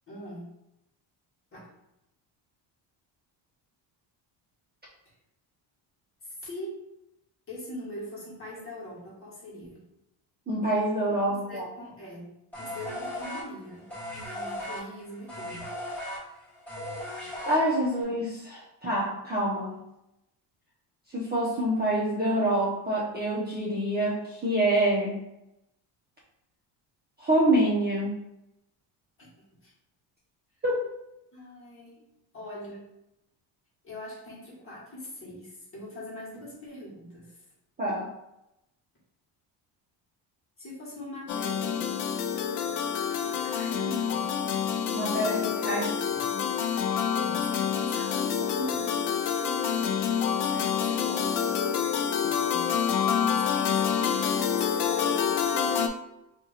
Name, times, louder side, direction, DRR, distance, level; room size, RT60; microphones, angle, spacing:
voice 1, 0.1-0.5 1.5-1.7 6.2-6.8 7.5-9.8 11.5-12.3 12.6-15.7 29.2-29.7 31.3-32.0 32.3-32.9 33.8-37.4 40.6-41.9 43.2-44.3 45.7-46.3 47.1-49.9 50.4-52.1 52.3-55.7, left 1 dB, 30° left, -6 dB, 1.5 m, -42 dB
voice 2, 10.5-11.7 17.5-19.8 21.1-25.2 27.2-28.1 30.6-30.9 37.8-38.1 44.9-45.9 46.3-46.4, right 1 dB, 20° right, -7 dB, 0.6 m, -26 dB
sound 1, 12.5-18.0, left 1 dB, 5° left, 1.3 m, -37 dB
sound 2, 41.3-55.9, left 7 dB, 60° left, 0.5 m, -27 dB
2.7 x 2.5 x 4.0 m, 0.88 s
cardioid pair, 130°, 47 cm